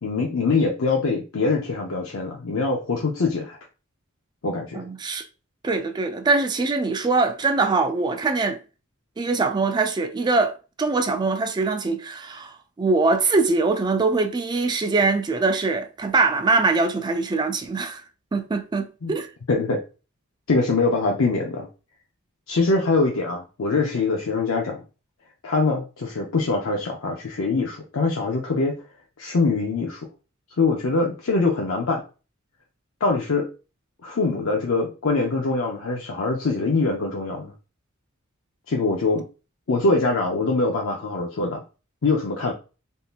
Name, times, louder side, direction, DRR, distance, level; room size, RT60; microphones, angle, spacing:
voice 1, 0.0-3.6 4.4-4.8 19.0-19.1 19.5-19.8 20.5-21.7 22.5-24.8 25.4-28.7 29.2-30.1 30.6-32.0 33.0-33.5 34.0-37.5 38.7-39.2 39.7-41.6 42.0-42.5, left 3 dB, 65° left, 0.6 m, -23 dB
voice 2, 4.7-5.2 5.6-8.6 9.2-18.0 18.3-19.3, right 3 dB, 20° right, 0.3 m, -23 dB
3.6 x 2.7 x 2.4 m
head